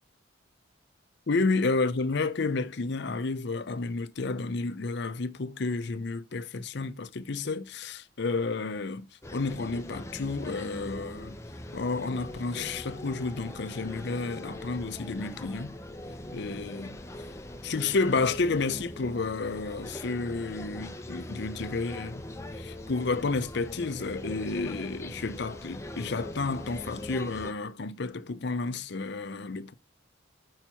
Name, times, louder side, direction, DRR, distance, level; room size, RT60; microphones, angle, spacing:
voice 1, 1.3-9.1 9.3-11.4 11.7-15.8 16.3-17.0 17.6-22.2 22.5-29.7, left 3 dB, 60° left, 0.6 m, -31 dB
sound 1, 9.2-27.5, left 1 dB, 15° left, 0.6 m, -41 dB
5.6 x 4.5 x 5.6 m
head